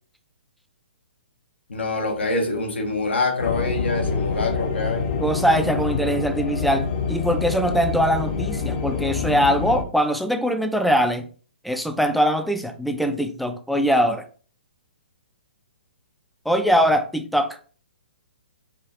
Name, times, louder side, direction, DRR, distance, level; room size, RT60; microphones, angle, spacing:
voice 1, 1.7-5.1, left 3 dB, 85° left, 1.2 m, -25 dB
sound 1, 3.4-9.8, left 5 dB, 45° left, 0.8 m, -26 dB
voice 2, 5.2-11.3 11.6-14.2 16.5-17.6, equal, ahead, 0.3 m, -22 dB
4.8 x 2.4 x 3.0 m
hypercardioid pair, 140°, 6 cm